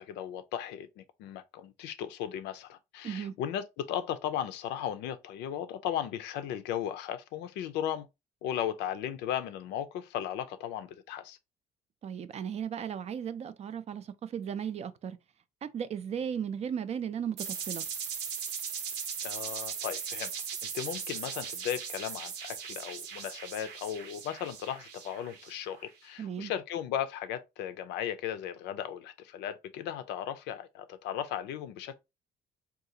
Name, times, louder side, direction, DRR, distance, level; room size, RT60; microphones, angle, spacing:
voice 1, 0.0-8.1 8.4-11.4 19.2-20.3 20.7-32.0, left 10 dB, 85° left, 0.5 m, -36 dB
voice 2, 12.0-15.2 15.6-17.9 26.2-26.5, right 8 dB, 40° right, 0.4 m, -36 dB
sound 1, 17.4-25.9, right 7 dB, 85° right, 0.8 m, -38 dB
3.8 x 2.4 x 2.7 m
cardioid pair, 110°, 17 cm